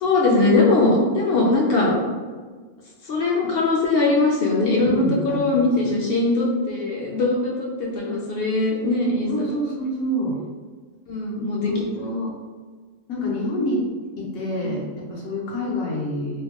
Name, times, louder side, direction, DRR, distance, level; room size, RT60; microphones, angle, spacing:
voice 1, 0.0-1.9 3.0-9.5 11.1-11.7 14.6-14.8, left 2 dB, 60° left, -3 dB, 0.6 m, -21 dB
voice 2, 4.8-6.0 9.3-10.4 11.6-12.4 13.1-13.9 14.2-16.4, equal, 85° left, -4 dB, 1.2 m, -27 dB
3.0 x 2.2 x 2.9 m, 1.5 s
omnidirectional pair, 1.4 m